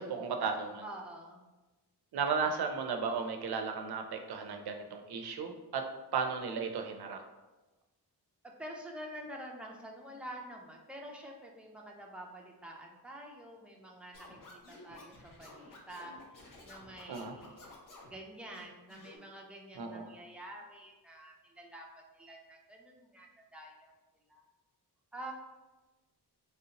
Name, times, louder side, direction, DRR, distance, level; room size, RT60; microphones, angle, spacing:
voice 1, 0.0-0.8 2.1-5.9 6.1-7.2 17.1-17.3 19.8-20.1, right 5 dB, 65° right, 5 dB, 0.5 m, -35 dB
voice 2, 0.8-1.4 8.6-17.6 18.1-23.9 24.3-24.4 25.1-25.3, right 1 dB, 5° right, -1 dB, 0.3 m, -48 dB
Scratching (performance technique), 14.1-18.1 18.5-19.2, left 2 dB, 50° left, 0.7 m, -53 dB
3.2 x 2.8 x 2.8 m, 1.1 s
wide cardioid pair, 135°, 41 cm